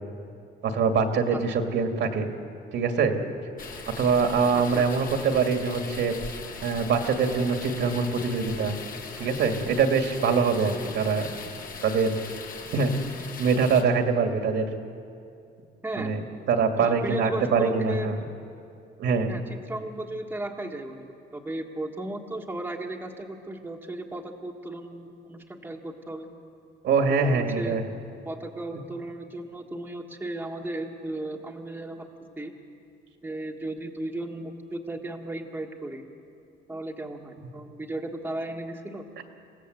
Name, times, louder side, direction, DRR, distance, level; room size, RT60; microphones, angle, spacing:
voice 1, 0.6-2.3 2.7-3.1 4.0-6.1 6.6-8.8 9.2-11.3 11.8-12.1 12.7-12.9 13.4-14.7 16.0-18.2 19.0-19.3 26.8-27.8, right 5 dB, 70° right, 4 dB, 2.4 m, -24 dB
sound 1, 3.6-13.8, left 5 dB, 45° left, 2.2 m, -40 dB
voice 2, 4.5-5.1 9.2-9.3 11.4-11.5 15.8-16.2 16.8-18.1 19.3-26.3 27.2-27.8 28.2-32.1 32.4-32.5 33.2-36.1 36.7-39.0, right 2 dB, 10° right, 1 dB, 1.5 m, -35 dB
28.5 x 17.0 x 8.0 m, 2.5 s
cardioid pair, 145°, 19 cm